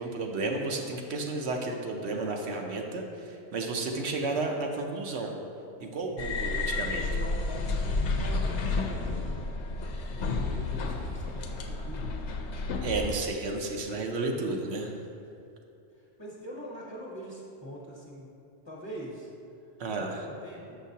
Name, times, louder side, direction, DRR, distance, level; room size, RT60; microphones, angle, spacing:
voice 1, 0.0-5.4 5.8-7.0 12.8-14.9 19.8-20.2, right 3 dB, 75° right, 2 dB, 0.9 m, -32 dB
sound 1, 6.2-13.2, left 3 dB, 85° left, 0.9 m, -31 dB
voice 2, 6.8-9.5 9.8-12.1 15.9-18.3 18.6-19.3 20.0-20.8, equal, 25° left, -5 dB, 0.9 m, -43 dB
7.1 x 5.7 x 2.7 m, 2.6 s
omnidirectional pair, 1.2 m